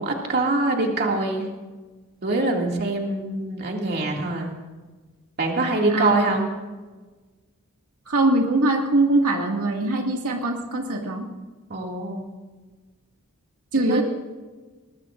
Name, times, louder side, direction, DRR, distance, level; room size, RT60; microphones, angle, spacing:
voice 1, 0.0-1.5 2.2-4.6 5.4-6.5 11.7-12.3 13.8-14.0, right 2 dB, 45° right, 0 dB, 2.4 m, -24 dB
voice 2, 8.1-11.3 13.7-14.0, right 2 dB, 80° right, 0 dB, 2.1 m, -22 dB
22.0 x 20.0 x 2.6 m, 1.3 s
head